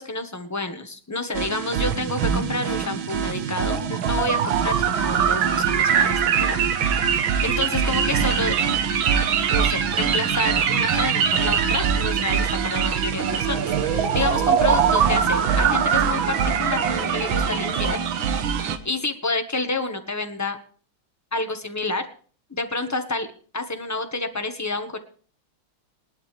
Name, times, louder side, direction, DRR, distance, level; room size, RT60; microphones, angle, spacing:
voice 1, 0.0-6.7 7.0-8.6 9.5-18.0 18.8-20.6 21.3-22.1 22.5-23.3 23.5-25.0, left 2 dB, 10° left, 7 dB, 1.0 m, -29 dB
sound 1, 1.3-18.8, right 7 dB, 70° right, 1.9 m, -22 dB
20.0 x 11.5 x 3.4 m, 0.43 s
omnidirectional pair, 2.3 m